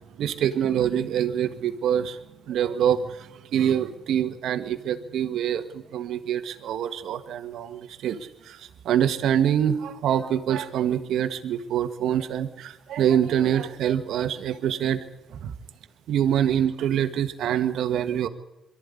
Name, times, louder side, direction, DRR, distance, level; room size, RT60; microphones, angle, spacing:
voice 1, 0.2-2.2 2.5-8.2 8.5-15.0 15.3-15.5 16.1-18.3, right 9 dB, 75° right, 9 dB, 1.7 m, -25 dB
23.0 x 13.5 x 10.0 m, 1.0 s
cardioid pair, 90°, 0 cm